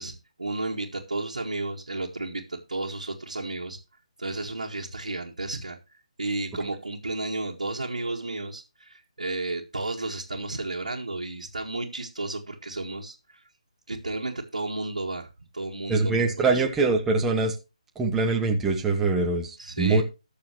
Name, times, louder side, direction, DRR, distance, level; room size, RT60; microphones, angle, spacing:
voice 1, 0.0-3.8 4.2-5.8 6.2-13.4 13.9-16.6 19.6-20.0, right 2 dB, 80° right, -2 dB, 1.9 m, -33 dB
voice 2, 15.9-17.5 18.0-20.0, right 3 dB, 10° right, 2 dB, 1.2 m, -23 dB
19.5 x 6.7 x 3.1 m, 0.27 s
figure-of-eight pair, 150°, 4 cm